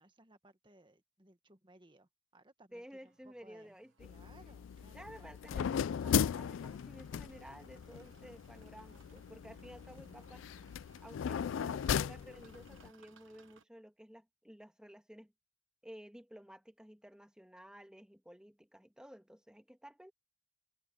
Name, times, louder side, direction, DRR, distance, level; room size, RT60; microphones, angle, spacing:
voice 1, 0.0-5.3 9.8-10.2, right 2 dB, 25° right, 1.5 m, -63 dB
voice 2, 2.7-4.1 4.9-10.4 11.0-15.3 15.8-20.1, equal, 5° right, 1.7 m, -54 dB
sound 1, 3.1-13.6, right 4 dB, 75° right, 1.2 m, -65 dB
sound 2, 4.0-12.9, left 8 dB, 75° left, 0.3 m, -37 dB
head